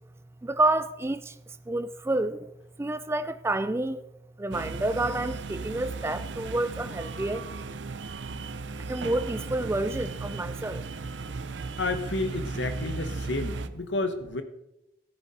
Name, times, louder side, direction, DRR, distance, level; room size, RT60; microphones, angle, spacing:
voice 1, 0.4-1.4 1.7-2.5 2.8-4.0 4.4-7.4 8.9-10.8, right 2 dB, 15° right, 0.4 m, -29 dB
sound 1, 4.5-13.7, right 3 dB, 80° right, 0.7 m, -36 dB
voice 2, 11.8-14.4, left 2 dB, 75° left, 1.2 m, -31 dB
13.5 x 10.0 x 4.2 m
head